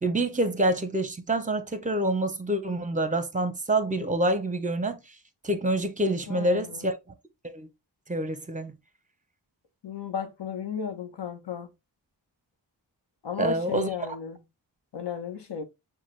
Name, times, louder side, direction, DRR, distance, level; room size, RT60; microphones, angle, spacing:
voice 1, 0.0-5.0 5.4-6.9 7.5-7.7 8.1-8.7 13.4-13.9, right 1 dB, 20° right, 0.7 m, -26 dB
voice 2, 6.3-6.9 9.8-11.7 13.2-14.4 14.9-15.6, left 7 dB, 80° left, 0.9 m, -34 dB
5.8 x 2.3 x 3.2 m
wide cardioid pair, 70°, 42 cm